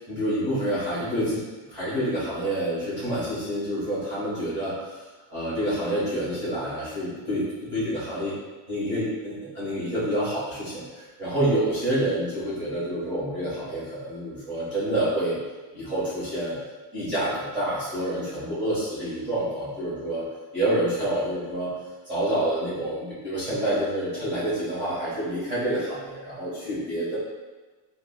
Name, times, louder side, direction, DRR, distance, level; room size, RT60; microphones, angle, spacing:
voice 1, 0.0-1.4 1.7-5.0 5.3-8.3 8.7-15.4 15.7-16.6 16.9-20.3 20.5-21.7 22.0-27.2, right 1 dB, 20° right, -12 dB, 1.4 m, -28 dB
5.0 x 2.6 x 2.3 m, 1.3 s
cardioid pair, 170°, 48 cm